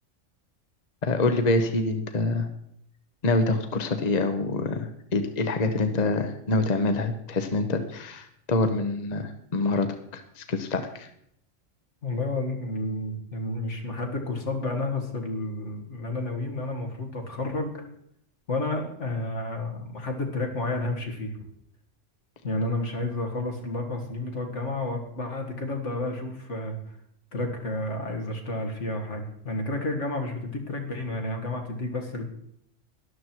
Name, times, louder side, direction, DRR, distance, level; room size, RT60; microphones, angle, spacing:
voice 1, 1.0-2.5 3.2-9.9 10.1-11.1, left 2 dB, 35° left, 7 dB, 1.1 m, -26 dB
voice 2, 12.0-17.8 18.5-21.4 22.4-26.8 27.3-32.3, left 2 dB, 75° left, 3 dB, 2.3 m, -31 dB
13.0 x 11.0 x 4.5 m, 0.71 s
omnidirectional pair, 1.2 m